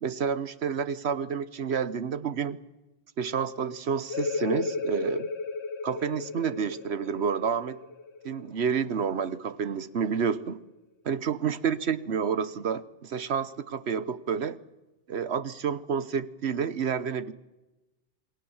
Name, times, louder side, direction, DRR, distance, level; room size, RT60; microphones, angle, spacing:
voice 1, 0.0-2.6 3.2-5.3 5.8-7.8 8.2-10.6 11.0-14.6 15.1-17.3, right 6 dB, 70° right, 15 dB, 1.3 m, -29 dB
sound 1, 4.1-9.5, left 3 dB, 80° left, 1.6 m, -34 dB
27.5 x 19.5 x 7.2 m, 1.0 s
omnidirectional pair, 1.1 m